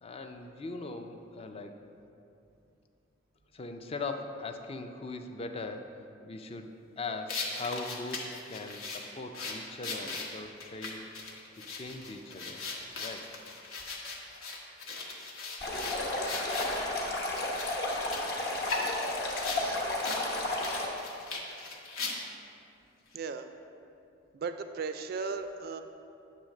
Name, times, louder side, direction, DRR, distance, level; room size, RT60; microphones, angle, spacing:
voice 1, 0.0-1.8 3.5-5.9 6.3-11.1 11.7-12.6 13.0-13.3, left 3 dB, 30° left, 6 dB, 0.4 m, -40 dB
sound 1, 7.3-16.8 17.3-19.6 20.0-20.2 20.5-22.4, left 3 dB, 85° left, 1.0 m, -39 dB
Stream, 15.6-20.9, left 2 dB, 50° left, 1.0 m, -32 dB
voice 2, 23.1-23.5 24.3-25.8, right 4 dB, 50° right, 8 dB, 0.3 m, -37 dB
8.5 x 3.2 x 6.3 m, 2.6 s
head